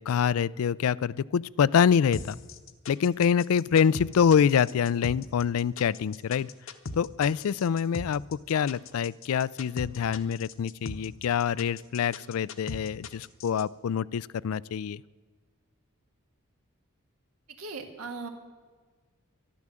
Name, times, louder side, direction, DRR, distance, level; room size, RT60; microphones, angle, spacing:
voice 1, 0.0-2.4 2.9-6.5 6.9-15.0, left 7 dB, 80° left, 22 dB, 0.4 m, -25 dB
sound 1, 2.1-13.6, left 3 dB, 60° left, 0.9 m, -39 dB
voice 2, 17.6-18.3, right 3 dB, 85° right, 5 dB, 1.9 m, -38 dB
13.0 x 12.0 x 7.5 m, 1.4 s
head